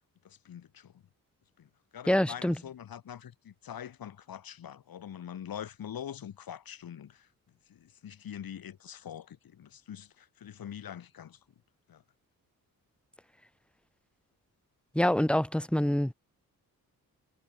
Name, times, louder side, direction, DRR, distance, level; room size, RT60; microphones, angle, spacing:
voice 1, 0.2-1.0 1.6-7.3 7.7-11.4 11.9-12.0, left 9 dB, 80° left, 6.9 m, -44 dB
voice 2, 2.1-2.6 14.9-16.1, left 1 dB, 5° left, 2.0 m, -26 dB
cardioid pair, 100°, 35 cm